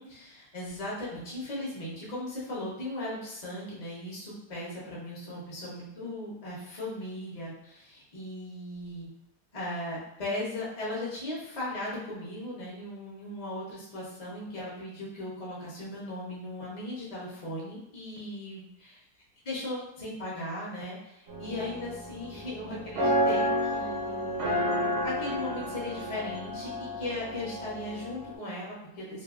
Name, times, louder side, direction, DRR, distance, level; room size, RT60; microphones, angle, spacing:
voice 1, 0.0-9.1 9.5-18.9 19.4-24.6 25.0-29.2, left 1 dB, 30° left, -6 dB, 0.7 m, -37 dB
sound 1, 21.3-28.3, equal, 55° right, 0.8 m, -31 dB
2.7 x 2.6 x 2.4 m, 0.82 s
omnidirectional pair, 1.6 m